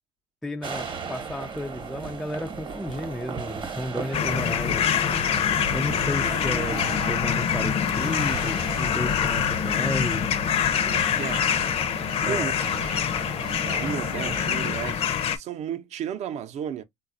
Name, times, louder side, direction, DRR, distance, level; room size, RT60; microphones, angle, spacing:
voice 1, 0.4-4.8 5.7-6.8 7.1-10.2 12.2-12.5, left 1 dB, ahead, 0.3 m, -33 dB
sound 1, 0.6-14.6, right 5 dB, 35° right, 0.9 m, -37 dB
sound 2, 4.1-15.4, left 8 dB, 45° left, 0.6 m, -25 dB
sound 3, 4.3-11.2, left 4 dB, 75° left, 0.7 m, -38 dB
voice 2, 10.5-11.5 12.2-12.5 12.8-13.1 13.8-16.8, right 9 dB, 50° right, 0.6 m, -34 dB
4.0 x 2.3 x 2.5 m
supercardioid pair, 95°, 14 cm